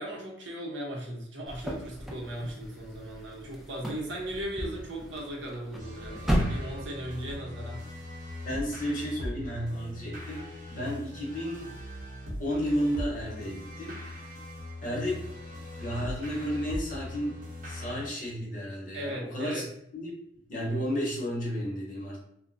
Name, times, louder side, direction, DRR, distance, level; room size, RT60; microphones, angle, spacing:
voice 1, 0.0-7.8 18.9-19.7, right 1 dB, 75° right, -2 dB, 0.8 m, -37 dB
sound 1, 1.5-7.3, equal, ahead, 0.3 m, -34 dB
sound 2, 5.8-18.1, left 1 dB, 45° right, 0.8 m, -40 dB
voice 2, 8.4-10.4 10.7-11.7 12.4-14.0 14.8-15.2 15.8-17.4 17.6-19.6 19.9-20.1 20.5-22.2, equal, 45° left, -4 dB, 0.9 m, -32 dB
2.2 x 2.1 x 3.7 m, 0.72 s
head